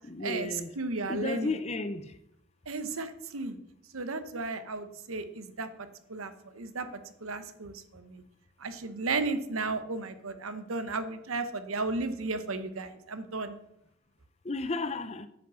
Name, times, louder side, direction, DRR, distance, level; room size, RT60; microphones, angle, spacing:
voice 1, 0.0-0.7 1.1-2.2 14.4-15.3, left 3 dB, 30° left, 0.6 m, -33 dB
voice 2, 0.8-1.5 2.7-3.6 3.9-6.9 7.2-8.2 8.6-13.6, right 3 dB, 75° right, 0.9 m, -34 dB
9.1 x 5.2 x 7.0 m
head